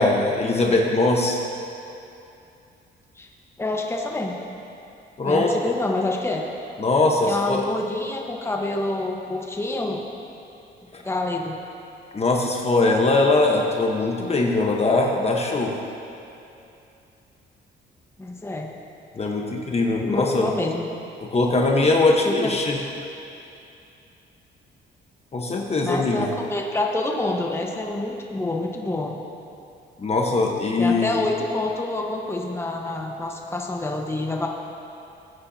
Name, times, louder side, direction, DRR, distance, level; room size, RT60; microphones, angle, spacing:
voice 1, 0.0-1.4 5.2-5.5 6.8-7.7 10.9-11.0 12.1-15.8 19.1-20.5 21.2-22.8 25.3-26.3 30.0-31.2, left 2 dB, 30° left, 1 dB, 1.2 m, -21 dB
voice 2, 3.6-4.3 5.2-6.4 7.3-10.0 11.0-11.6 18.2-18.7 20.0-20.9 22.2-22.6 25.8-29.1 30.8-34.5, left 2 dB, 10° left, 0 dB, 1.2 m, -27 dB
19.5 x 9.8 x 2.8 m, 2.7 s
cardioid pair, 90°, 20 cm